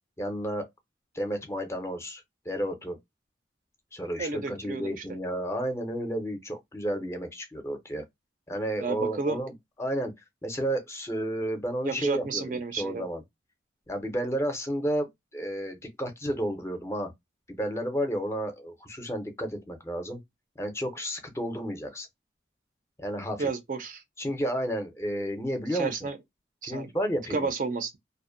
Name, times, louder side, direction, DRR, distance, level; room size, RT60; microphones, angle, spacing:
voice 1, 0.2-0.6 1.1-3.0 3.9-8.0 8.5-9.5 9.8-10.1 10.4-13.2 13.9-15.1 15.3-17.1 17.5-20.2 20.6-22.1 23.0-23.5 24.2-26.0 26.6-27.5, right 1 dB, 15° left, 0.5 m, -31 dB
voice 2, 4.2-5.0 8.8-9.4 11.8-13.0 23.4-24.0 25.7-26.2 26.6-26.9 27.3-28.0, right 4 dB, 50° right, 0.4 m, -31 dB
2.5 x 2.1 x 2.5 m
head